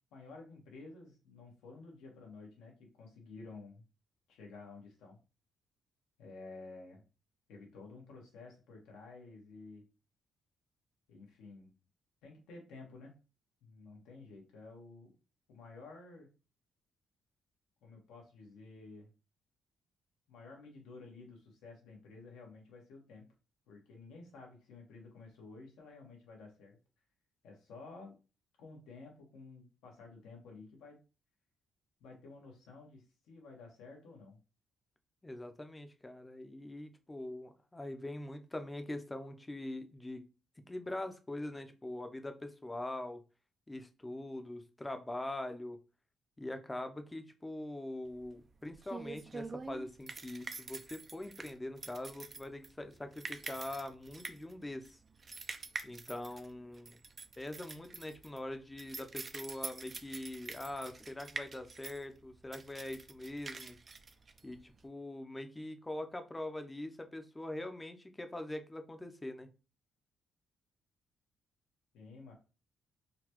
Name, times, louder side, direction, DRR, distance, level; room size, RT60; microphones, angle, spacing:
voice 1, 0.1-3.8 4.3-5.2 6.2-7.0 7.5-9.8 11.1-11.7 12.2-13.1 13.6-15.1 15.5-16.3 17.8-19.1 20.3-23.3 23.7-26.8 27.4-28.1 28.6-31.0 32.0-34.4 71.9-72.3, left 3 dB, 90° left, 0 dB, 1.2 m, -52 dB
voice 2, 35.2-40.2 40.7-43.2 43.7-45.8 46.4-55.0 55.8-57.0 57.4-63.8 64.4-69.5, left 1 dB, 15° left, 8 dB, 0.6 m, -43 dB
sound 1, 48.1-64.9, right 4 dB, 40° right, 0.4 m, -46 dB
3.9 x 2.2 x 3.0 m, 0.32 s
cardioid pair, 75°, 0 cm